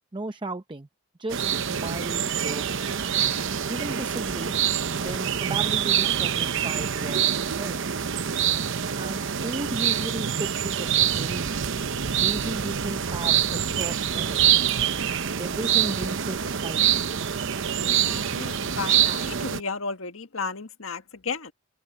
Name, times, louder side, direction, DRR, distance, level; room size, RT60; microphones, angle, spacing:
voice 1, 0.1-0.9 1.2-2.9 3.7-4.6 5.0-7.8 9.0-11.6 12.1-14.6 15.4-17.3, right 2 dB, 25° right, 0.7 m, -35 dB
sound 1, 1.3-19.6, right 9 dB, 65° right, 0.8 m, -25 dB
sound 2, 3.9-18.8, left 1 dB, 65° left, 7.3 m, -56 dB
voice 2, 17.8-21.5, left 4 dB, 90° left, 1.6 m, -34 dB
head